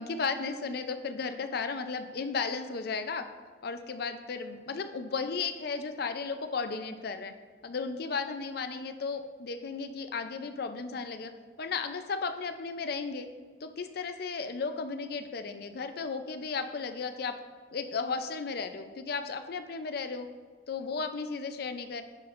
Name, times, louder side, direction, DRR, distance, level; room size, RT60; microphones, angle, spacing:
voice 1, 0.0-3.2 3.6-7.3 7.6-11.3 11.6-13.3 13.6-17.4 17.7-20.3 20.7-22.0, left 4 dB, 55° left, 9 dB, 0.4 m, -34 dB
9.6 x 6.0 x 2.5 m, 1.5 s
head